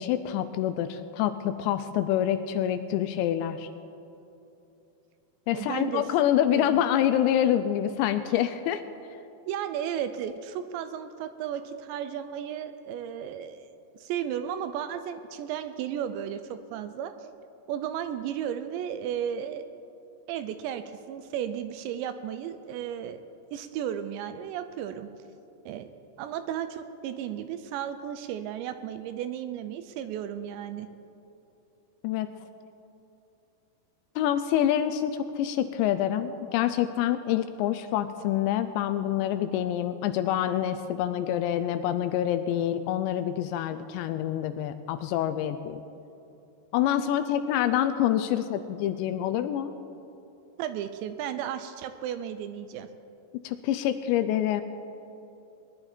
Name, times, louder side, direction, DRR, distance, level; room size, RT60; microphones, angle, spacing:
voice 1, 0.0-3.7 5.5-8.8 32.0-32.3 34.2-45.8 46.7-49.7 53.4-54.6, left 11 dB, 85° left, 10 dB, 2.6 m, -26 dB
voice 2, 5.5-6.0 6.5-6.8 9.5-13.7 14.0-17.3 17.7-19.7 20.3-23.2 23.5-25.1 25.7-25.9 26.2-30.9 50.6-52.9, right 9 dB, 80° right, 10 dB, 2.7 m, -34 dB
20.0 x 11.0 x 4.4 m, 2.8 s
omnidirectional pair, 5.3 m